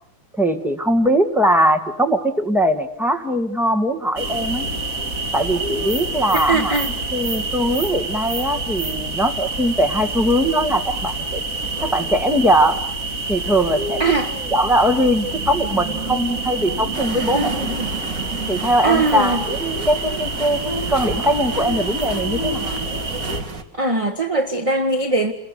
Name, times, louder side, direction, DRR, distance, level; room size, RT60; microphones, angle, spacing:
voice 1, 0.4-4.7 5.3-6.7 7.1-11.4 11.8-12.8 13.3-14.0 14.5-17.5 18.5-22.7, equal, ahead, 4 dB, 2.0 m, -20 dB
sound 1, 4.2-23.4, right 2 dB, 45° right, 2.4 m, -27 dB
voice 2, 6.3-6.9 14.0-14.3 17.0-17.9 18.8-19.4 23.7-25.3, right 2 dB, 20° right, 6 dB, 1.2 m, -21 dB
sound 2, 16.9-23.6, right 3 dB, 60° right, 2.6 m, -34 dB
28.5 x 22.0 x 8.3 m, 0.69 s
omnidirectional pair, 2.1 m